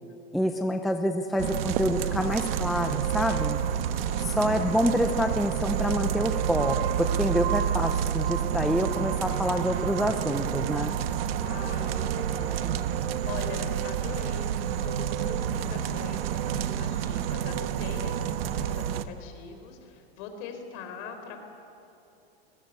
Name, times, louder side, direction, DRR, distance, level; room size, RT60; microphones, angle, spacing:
voice 1, 0.3-3.6 4.2-11.0, equal, ahead, 5 dB, 0.5 m, -27 dB
sound 1, 1.4-19.0, right 9 dB, 70° right, 1.3 m, -29 dB
voice 2, 3.9-4.5 11.4-14.5 14.8-21.5, left 6 dB, 45° left, 5 dB, 4.1 m, -42 dB
22.0 x 21.0 x 8.3 m, 2.7 s
supercardioid pair, 155°, 31 cm